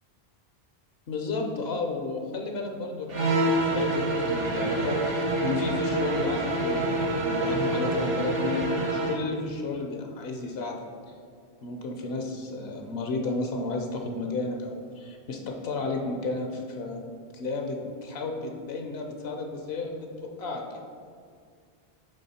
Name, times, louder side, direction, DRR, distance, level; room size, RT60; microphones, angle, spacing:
voice 1, 1.1-11.1 11.6-17.0 17.3-20.8, left 3 dB, 75° left, 3 dB, 0.9 m, -33 dB
sound 1, 3.1-9.2, right 1 dB, 65° right, 1.1 m, -26 dB
8.9 x 3.4 x 4.2 m, 2.2 s
omnidirectional pair, 1.1 m